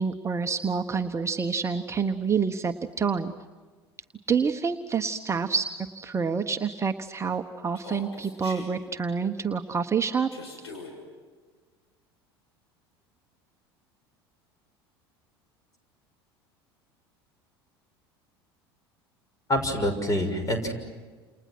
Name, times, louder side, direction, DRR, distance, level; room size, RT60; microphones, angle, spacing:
voice 1, 0.0-3.3 4.3-5.7 5.9-10.5, right 5 dB, 20° right, 6 dB, 1.2 m, -27 dB
Human voice, 7.7-8.7 10.3-10.9, left 3 dB, 80° left, 6.5 m, -42 dB
voice 2, 19.5-20.7, equal, 25° left, 8 dB, 6.5 m, -26 dB
29.5 x 29.0 x 6.2 m, 1.4 s
figure-of-eight pair, 70°, 13 cm